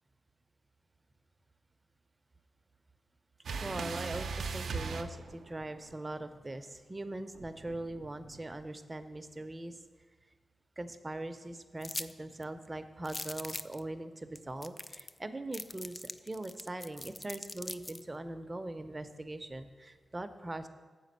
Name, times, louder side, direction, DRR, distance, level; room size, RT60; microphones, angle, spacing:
sound 1, 3.4-5.9 7.3-8.6, right 5 dB, 85° right, 0.5 m, -39 dB
voice 1, 3.6-9.8 10.8-20.7, right 2 dB, 25° right, 9 dB, 0.6 m, -41 dB
sound 2, 11.8-12.1 12.4-12.5 13.0-13.8 14.4-14.5 14.6-15.2 15.5-18.0, left 2 dB, 30° left, 0.3 m, -41 dB
7.8 x 5.1 x 6.6 m, 1.4 s
cardioid pair, 65°, 0 cm